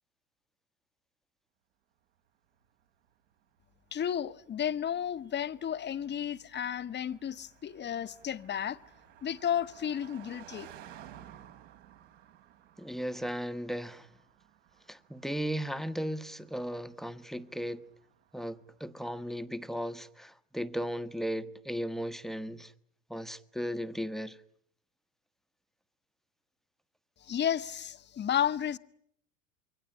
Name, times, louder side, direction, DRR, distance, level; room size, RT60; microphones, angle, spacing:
Car passing by, 2.5-19.0, right 11 dB, 70° right, 3.3 m, -56 dB
voice 1, 3.9-8.8 9.2-10.7 27.2-28.8, left 9 dB, 25° left, 1.1 m, -32 dB
voice 2, 12.8-14.1 14.9-17.8 18.3-22.7 23.1-24.4, equal, ahead, 1.2 m, -36 dB
27.5 x 23.5 x 9.0 m
hypercardioid pair, 90°, 39 cm